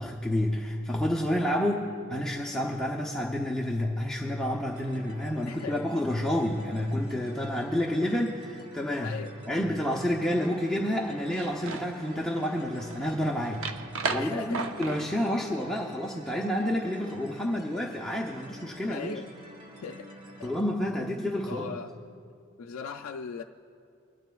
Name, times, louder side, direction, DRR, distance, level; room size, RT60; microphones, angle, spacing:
voice 1, 0.0-9.2 9.5-13.7 14.1-19.2 20.4-21.8, left 1 dB, 5° left, -3 dB, 0.6 m, -29 dB
sound 1, 4.7-20.6, equal, 25° right, 1.1 m, -49 dB
voice 2, 5.4-5.9 9.0-9.3 14.1-14.7 18.8-19.3 19.8-20.1 20.4-20.5 21.5-21.9 22.6-23.4, left 5 dB, 85° left, 4 dB, 0.4 m, -38 dB
sound 2, 10.0-15.2, right 4 dB, 70° right, 0.6 m, -38 dB
22.5 x 12.5 x 2.3 m, 2.4 s
head